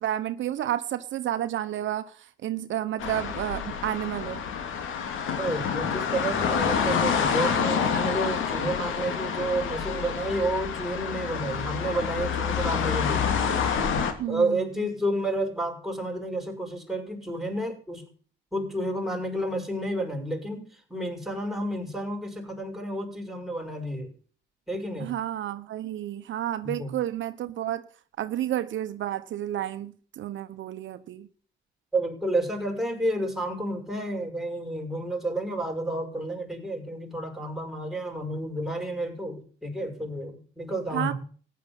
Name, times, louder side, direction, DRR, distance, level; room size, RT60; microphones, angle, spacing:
voice 1, 0.0-2.1 2.4-4.4 14.2-14.6 25.0-27.8 28.2-31.3 40.9-41.1, right 12 dB, 70° right, 1.0 m, -31 dB
sound 1, 3.0-14.1, left 7 dB, 80° left, 2.7 m, -28 dB
voice 2, 5.4-13.3 13.7-18.0 18.5-20.6 20.9-24.1 24.7-25.1 26.6-27.0 31.9-41.1, right 1 dB, ahead, 5.8 m, -30 dB
15.0 x 10.5 x 7.1 m
cardioid pair, 90°, 20 cm